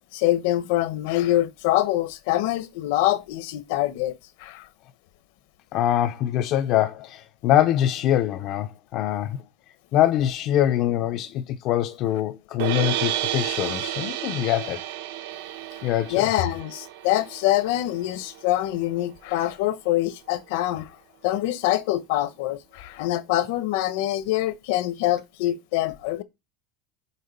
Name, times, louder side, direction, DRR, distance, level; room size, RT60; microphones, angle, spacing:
voice 1, 0.1-4.1 4.4-4.7 16.1-20.9 21.2-26.2, left 15 dB, 60° left, 0.9 m, -25 dB
voice 2, 5.7-9.4 9.9-14.8 15.8-16.2, left 12 dB, 40° left, 0.5 m, -23 dB
sound 1, 12.6-18.8, right 12 dB, 70° right, 1.0 m, -31 dB
6.5 x 5.1 x 5.2 m
cardioid pair, 180°, 0 cm